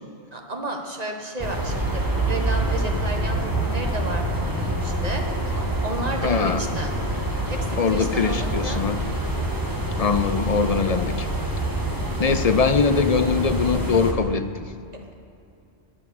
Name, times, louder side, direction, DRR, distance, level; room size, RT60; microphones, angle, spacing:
voice 1, 0.3-5.2 5.8-6.9 7.4-8.8, right 1 dB, 35° right, 2 dB, 1.5 m, -32 dB
sound 1, 1.4-14.1, right 1 dB, 20° right, 1.5 m, -26 dB
voice 2, 6.2-6.6 7.8-9.0 10.0-11.3 12.2-14.6, left 5 dB, 45° left, 10 dB, 0.5 m, -22 dB
21.0 x 7.6 x 6.9 m, 2.6 s
omnidirectional pair, 1.2 m